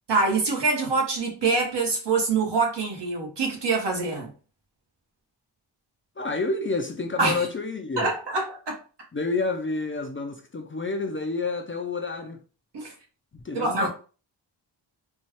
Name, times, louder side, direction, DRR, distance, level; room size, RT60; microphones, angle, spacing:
voice 1, 0.1-4.3 7.2-7.5 8.0-8.7 12.7-12.9 13.5-13.9, right 3 dB, 65° right, 1.4 m, -25 dB
voice 2, 6.2-8.1 9.1-12.4 13.3-13.9, left 3 dB, 25° left, 0.5 m, -29 dB
4.3 x 2.4 x 3.1 m
wide cardioid pair, 100°, 45 cm